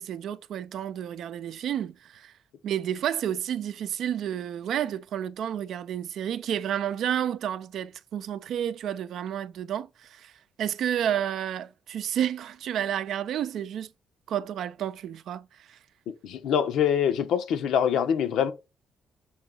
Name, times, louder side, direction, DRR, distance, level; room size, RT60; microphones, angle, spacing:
voice 1, 0.0-2.3 2.6-10.3 10.6-13.9 14.3-15.8, right 10 dB, 75° right, 0.5 m, -31 dB
voice 2, 16.2-18.5, left 8 dB, 80° left, 0.8 m, -24 dB
6.3 x 2.9 x 5.2 m
cardioid pair, 90°, 0 cm